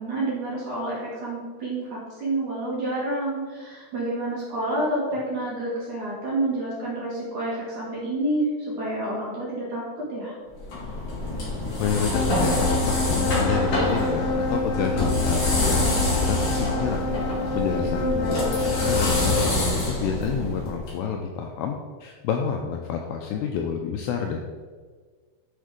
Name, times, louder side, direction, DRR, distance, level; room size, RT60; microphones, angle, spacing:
voice 1, 0.0-10.3 18.0-18.4, right 1 dB, 50° right, -6 dB, 2.7 m, -29 dB
sound 1, 10.6-20.9, left 2 dB, 45° left, 3.6 m, -26 dB
voice 2, 11.8-17.0 17.5-24.4, left 7 dB, 90° left, 3 dB, 2.5 m, -29 dB
sound 2, 12.1-19.6, left 2 dB, 70° left, 3.4 m, -28 dB
10.5 x 4.4 x 5.0 m, 1.5 s
omnidirectional pair, 5.6 m